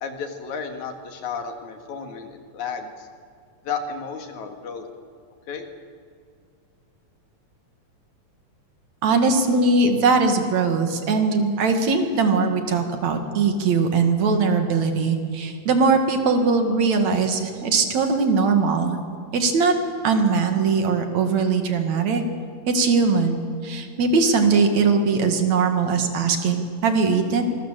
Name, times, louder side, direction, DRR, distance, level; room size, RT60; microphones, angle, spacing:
voice 1, 0.0-3.1 3.6-4.9 5.5-5.7, left 5 dB, 80° left, 5 dB, 3.3 m, -32 dB
voice 2, 9.0-19.0 19.3-19.7 20.0-22.2 22.7-27.4, right 4 dB, 70° right, 5 dB, 3.3 m, -20 dB
25.5 x 21.5 x 7.7 m, 2.2 s
omnidirectional pair, 3.3 m